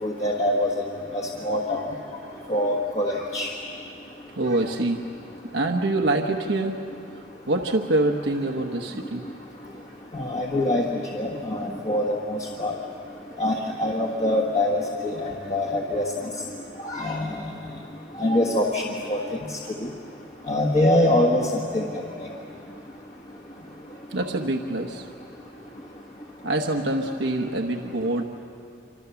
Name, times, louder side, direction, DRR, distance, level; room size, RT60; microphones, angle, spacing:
voice 1, 0.0-0.7 1.4-1.8 2.5-3.5 10.1-10.8 11.1-12.7 13.4-16.0 16.8-17.3 18.2-18.8 19.1-19.2 20.5-21.5 21.7-21.8, left 1 dB, 35° left, -1 dB, 1.5 m, -24 dB
voice 2, 4.3-5.1 5.4-6.8 7.5-9.2 9.6-9.7 16.9-17.0 24.1-25.1 26.4-28.2, right 2 dB, 80° right, 4 dB, 1.1 m, -25 dB
27.0 x 25.5 x 7.0 m, 2.7 s
head